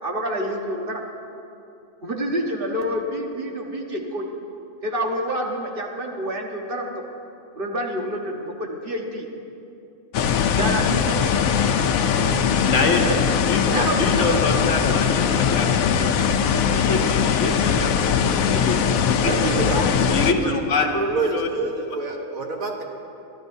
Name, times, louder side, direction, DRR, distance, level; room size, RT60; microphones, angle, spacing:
voice 1, 0.0-1.0 2.0-4.3 4.8-6.9 7.5-9.3 10.5-11.2 13.0-13.2 13.7-14.4 19.3-19.9 21.5-21.7, right 1 dB, 45° right, 0 dB, 1.5 m, -27 dB
sound 1, 10.1-20.3, left 7 dB, 85° left, 1.1 m, -21 dB
voice 2, 12.7-13.1 13.5-16.1 16.7-17.9 18.4-19.3 20.1-21.5, left 4 dB, 65° left, 3 dB, 1.4 m, -25 dB
voice 3, 19.2-19.8 20.2-22.8, right 3 dB, 80° right, 1 dB, 1.7 m, -28 dB
24.0 x 13.0 x 2.7 m, 2.7 s
omnidirectional pair, 1.4 m